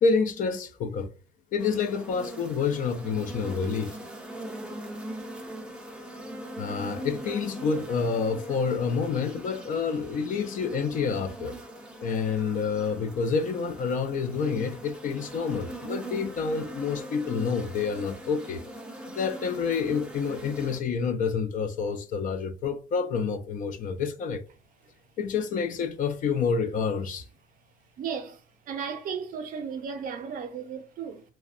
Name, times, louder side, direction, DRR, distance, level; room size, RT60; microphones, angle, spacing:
voice 1, 0.0-1.1 1.5-4.0 6.6-11.6 12.0-18.6 19.1-24.4 25.2-27.2, left 5 dB, 50° left, 0.4 m, -28 dB
sound 1, 1.6-20.8, right 1 dB, 5° right, 0.4 m, -41 dB
voice 2, 28.0-28.4 28.7-31.2, right 6 dB, 55° right, 0.5 m, -35 dB
2.5 x 2.1 x 2.4 m
cardioid pair, 110°, 17 cm